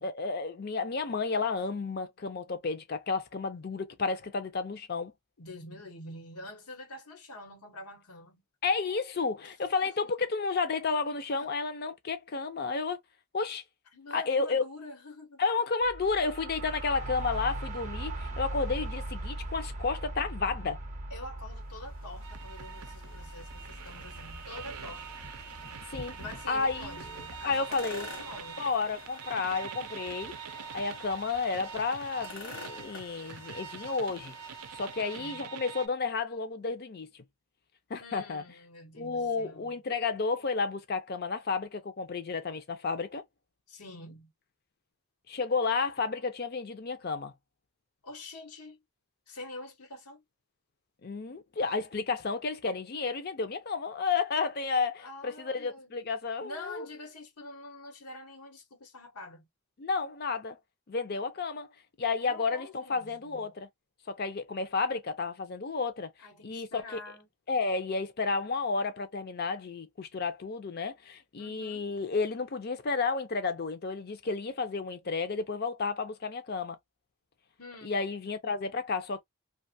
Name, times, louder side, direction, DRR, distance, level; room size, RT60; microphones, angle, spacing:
voice 1, 0.0-5.1 8.6-13.0 13.3-13.6 14.1-14.7 15.4-20.8 25.9-26.2 26.5-27.0 27.4-28.1 28.6-30.3 30.7-37.1 37.9-38.4 39.0-43.2 45.3-47.3 51.0-56.9 59.8-60.6 60.9-61.7 62.0-63.7 64.1-66.1 66.4-67.0 67.5-76.8 77.8-79.2, left 4 dB, 45° left, 0.5 m, -31 dB
voice 2, 5.4-8.4 9.4-9.5 9.8-9.9 10.2-10.3 11.1-11.5 13.9-15.4 21.1-25.1 26.2-28.7 35.0-35.5 38.0-39.8 43.7-44.3 48.0-48.8 49.3-50.2 55.0-56.0 56.4-59.5 62.3-63.5 66.2-67.3 71.4-71.8 77.6-78.0, left 2 dB, 90° left, 1.2 m, -46 dB
sound 1, 15.8-27.5, right 1 dB, 35° right, 0.6 m, -40 dB
sound 2, 21.5-35.6, left 2 dB, 60° left, 1.0 m, -49 dB
sound 3, 22.2-35.9, right 8 dB, 90° right, 0.5 m, -45 dB
2.5 x 2.3 x 2.6 m
head